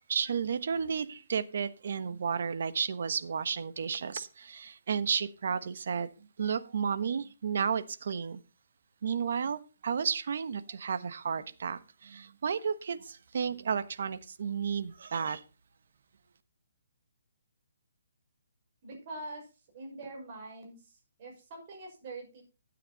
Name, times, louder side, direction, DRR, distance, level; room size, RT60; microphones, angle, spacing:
voice 1, 0.1-6.1 6.4-8.4 9.0-15.4, right 6 dB, 60° right, 1.2 m, -32 dB
voice 2, 18.8-19.4 19.7-22.4, right 2 dB, 35° right, 5.9 m, -44 dB
12.5 x 9.3 x 4.1 m
hypercardioid pair, 165°, 0 cm